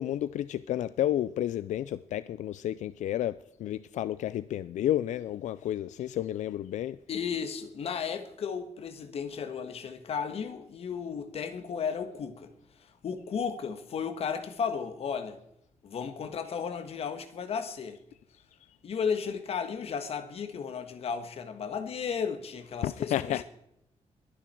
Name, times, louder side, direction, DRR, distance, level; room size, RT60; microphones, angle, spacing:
voice 1, 0.0-3.3 3.6-7.0 22.8-23.4, left 12 dB, 90° left, 0.4 m, -31 dB
voice 2, 7.1-12.5 13.0-15.4 15.8-18.0 18.8-23.4, left 6 dB, 55° left, 1.7 m, -34 dB
22.5 x 10.0 x 4.6 m
wide cardioid pair, 155°, 12 cm